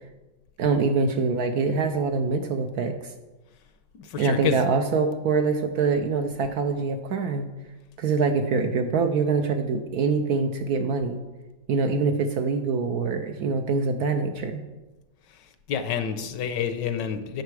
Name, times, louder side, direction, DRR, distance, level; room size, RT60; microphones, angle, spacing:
voice 1, 0.6-3.1 4.2-7.5 8.0-11.2 11.7-14.6, right 4 dB, 70° right, 6 dB, 1.0 m, -24 dB
voice 2, 4.0-4.6 15.7-17.4, left 7 dB, 75° left, 9 dB, 1.3 m, -28 dB
9.3 x 6.6 x 4.8 m, 1.1 s
omnidirectional pair, 2.0 m